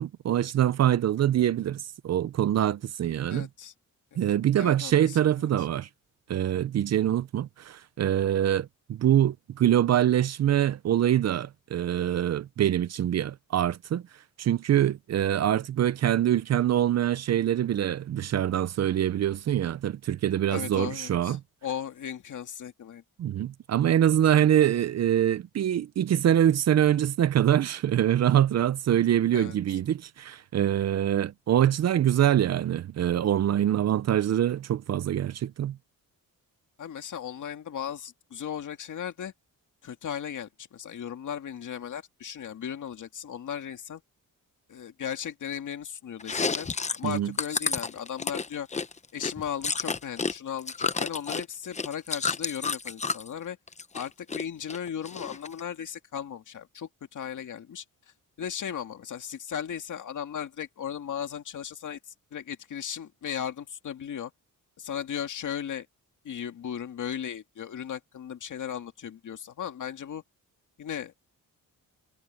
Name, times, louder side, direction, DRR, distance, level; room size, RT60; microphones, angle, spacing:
voice 1, 0.0-3.5 4.2-5.9 6.3-14.0 14.4-21.4 23.2-35.8 47.0-47.3, right 11 dB, 50° right, 0.5 m, -24 dB
voice 2, 3.3-3.7 4.6-5.5 20.5-23.0 29.3-29.6 36.8-39.3 39.8-44.0 44.7-46.7 47.0-48.7 49.1-53.6 53.9-57.8 58.4-64.3 64.8-65.9 66.2-70.2 70.8-71.1, left 8 dB, 60° left, 2.1 m, -36 dB
Chewing mastication, 46.2-50.3 50.6-53.3 53.7-54.4 54.7-55.6, left 4 dB, 20° left, 0.7 m, -30 dB
wide cardioid pair, 145°, 34 cm